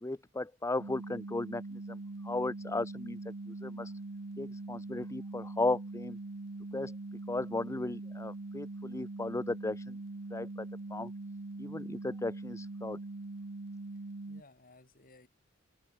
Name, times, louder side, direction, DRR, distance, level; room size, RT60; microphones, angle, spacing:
voice 1, 0.0-2.0 2.2-3.2 3.5-3.9 4.4-6.2 6.7-6.9 7.3-10.0 10.3-10.7 10.9-11.1 11.6-13.0, left 2 dB, 15° left, 0.5 m, -35 dB
sound 1, 0.8-14.4, right 2 dB, 65° right, 1.0 m, -42 dB
voice 2, 13.9-15.3, left 2 dB, 45° left, 7.2 m, -60 dB
head